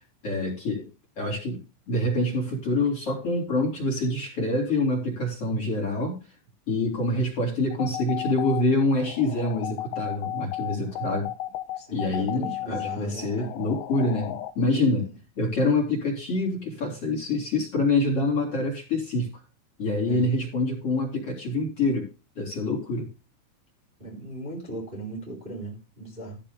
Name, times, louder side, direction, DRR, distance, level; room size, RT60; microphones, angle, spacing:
voice 1, 0.2-0.9 1.2-6.2 6.7-11.3 11.9-15.1 15.4-19.3 19.8-22.1 22.4-23.1, left 2 dB, 30° left, 2 dB, 4.1 m, -26 dB
sound 1, 7.7-14.5, left 13 dB, 85° left, 3.4 m, -34 dB
voice 2, 11.7-13.5 14.7-14.9 20.1-20.3 24.0-26.4, right 2 dB, 10° right, -2 dB, 3.1 m, -38 dB
14.5 x 5.3 x 5.3 m, 0.32 s
omnidirectional pair, 5.8 m